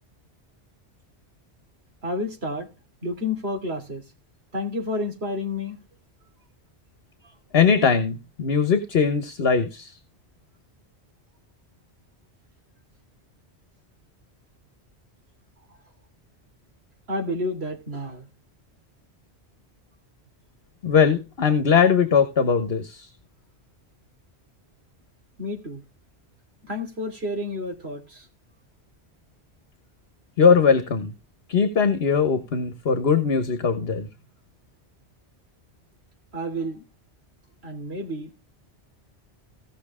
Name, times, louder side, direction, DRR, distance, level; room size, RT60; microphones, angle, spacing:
voice 1, 2.0-2.7 3.0-4.0 4.5-5.8 17.1-18.3 25.4-25.8 26.7-28.2 36.3-36.8 37.6-38.3, left 1 dB, 65° right, 3.3 m, -30 dB
voice 2, 7.5-9.9 20.8-23.1 30.4-31.1 31.5-34.1, left 6 dB, 65° left, 1.4 m, -20 dB
16.5 x 6.3 x 3.6 m
omnidirectional pair, 1.1 m